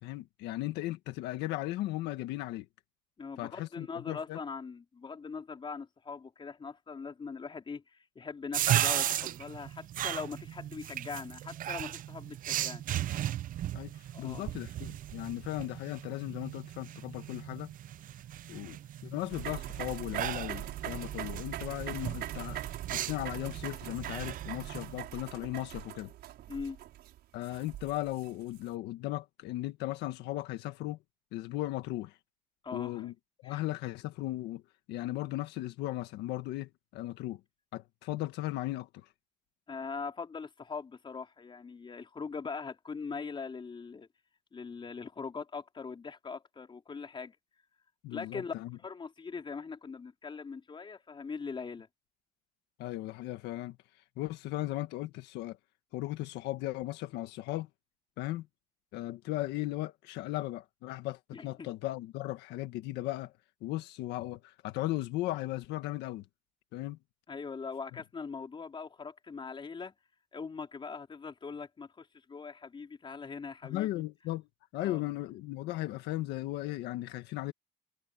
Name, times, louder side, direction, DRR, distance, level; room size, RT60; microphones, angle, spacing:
voice 1, 0.0-2.7 3.4-4.4 13.7-17.7 18.5-22.6 22.9-26.1 27.3-31.0 31.3-32.2 32.7-33.1 33.4-34.6 34.9-37.4 37.7-39.1 48.0-48.8 52.8-53.8 54.2-55.6 55.9-57.7 58.2-58.5 58.9-63.3 63.6-66.2 66.7-67.0 73.6-74.5 74.7-77.5, left 16 dB, 90° left, 1.6 m, -37 dB
voice 2, 3.2-12.8 14.1-14.5 26.5-26.8 32.6-33.1 33.4-33.6 39.7-44.1 44.5-47.4 48.1-51.9 61.3-61.7 67.3-69.9 70.3-74.0 74.8-75.0, left 5 dB, 30° left, 4.1 m, -41 dB
sound 1, 8.5-25.0, right 12 dB, 55° right, 0.5 m, -36 dB
sound 2, 19.3-28.6, right 13 dB, 75° right, 5.8 m, -42 dB
cardioid pair, 110°, 17 cm